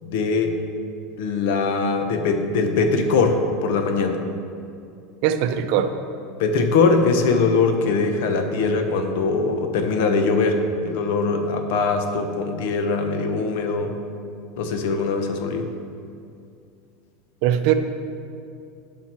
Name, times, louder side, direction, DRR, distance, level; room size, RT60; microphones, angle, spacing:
voice 1, 0.0-0.5 1.2-4.2 6.4-14.0 14.6-15.7, left 4 dB, 70° left, 6 dB, 0.9 m, -21 dB
voice 2, 5.2-5.9 17.4-17.7, right 10 dB, 55° right, 8 dB, 0.6 m, -20 dB
12.0 x 5.7 x 4.5 m, 2.5 s
supercardioid pair, 155°, 0 cm